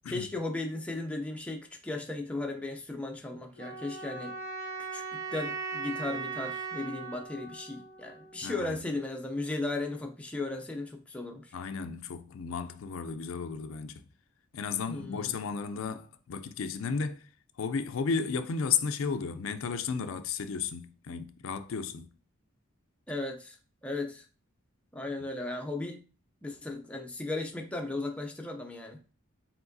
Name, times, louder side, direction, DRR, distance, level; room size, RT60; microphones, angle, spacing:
voice 1, 0.1-4.3 4.9-11.5 14.9-15.4 23.1-23.6 23.8-24.2 24.9-26.0 26.4-29.1, left 2 dB, 5° left, 0.5 m, -36 dB
sound 1, 3.6-8.6, right 5 dB, 45° right, 1.6 m, -39 dB
voice 2, 8.4-8.8 11.5-14.0 14.5-17.3 17.6-22.1, left 5 dB, 70° left, 0.4 m, -33 dB
4.7 x 3.6 x 2.6 m
head